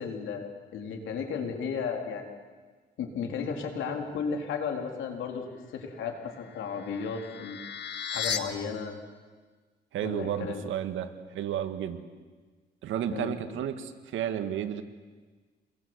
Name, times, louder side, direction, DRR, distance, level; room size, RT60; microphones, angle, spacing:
voice 1, 0.0-2.3 3.0-7.6 8.1-8.9 10.0-10.6 13.1-13.3, left 6 dB, 75° left, 3 dB, 4.3 m, -34 dB
sound 1, 6.1-8.4, left 7 dB, 60° left, 1.8 m, -36 dB
voice 2, 9.9-12.0 12.8-14.8, right 10 dB, 80° right, 8 dB, 1.8 m, -32 dB
28.0 x 21.5 x 8.2 m, 1.4 s
cardioid pair, 90°, 20 cm